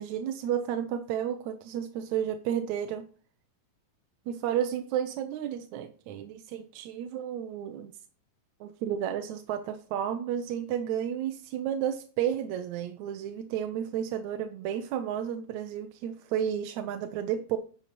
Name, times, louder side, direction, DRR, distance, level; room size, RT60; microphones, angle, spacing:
voice 1, 0.0-3.1 4.3-7.9 8.6-17.6, right 9 dB, 75° right, 1.8 m, -32 dB
10.5 x 6.3 x 4.1 m
omnidirectional pair, 3.9 m